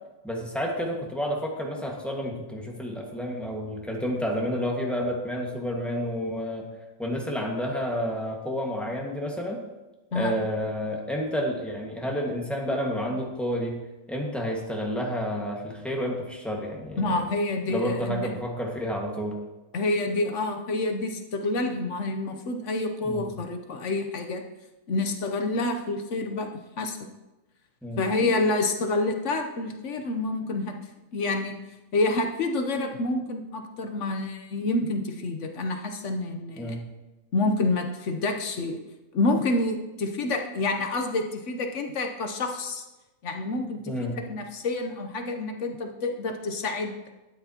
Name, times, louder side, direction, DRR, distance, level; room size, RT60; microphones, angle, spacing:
voice 1, 0.2-6.7 7.0-9.6 10.1-13.8 14.1-17.2 17.7-19.4 23.0-23.3 27.8-28.0 36.6-36.8 43.9-44.2, equal, ahead, -1 dB, 1.5 m, -30 dB
voice 2, 17.0-18.3 19.7-24.4 24.9-26.5 26.8-27.0 28.0-30.8 31.1-31.6 31.9-36.8 37.3-38.8 39.1-42.8 43.2-47.0, left 2 dB, 60° left, 5 dB, 1.1 m, -28 dB
12.5 x 9.0 x 2.9 m, 1.0 s
omnidirectional pair, 1.5 m